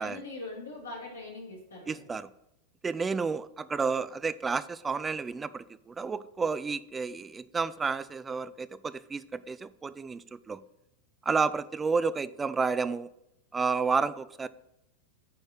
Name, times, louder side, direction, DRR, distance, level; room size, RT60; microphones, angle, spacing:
voice 1, 0.0-2.1, left 2 dB, 70° left, -4 dB, 3.5 m, -42 dB
voice 2, 1.9-2.3 2.8-10.6 11.3-13.1 13.5-14.5, right 5 dB, 15° right, 15 dB, 0.4 m, -31 dB
9.7 x 4.2 x 6.3 m, 0.84 s
figure-of-eight pair, 90°, 0 cm